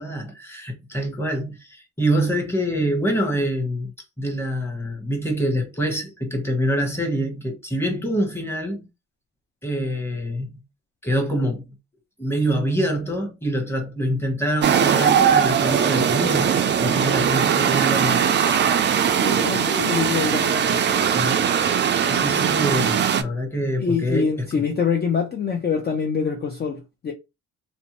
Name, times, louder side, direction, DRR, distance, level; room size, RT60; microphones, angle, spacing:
voice 1, 0.0-8.9 9.6-10.6 11.0-11.8 12.2-18.2 21.0-21.4 22.1-24.6, equal, 10° left, 1.0 m, -25 dB
sound 1, 14.6-23.2, right 8 dB, 40° right, 0.4 m, -20 dB
voice 2, 19.2-20.6 23.8-27.1, left 6 dB, 35° left, 0.5 m, -25 dB
2.6 x 2.1 x 2.9 m
cardioid pair, 90°, 30 cm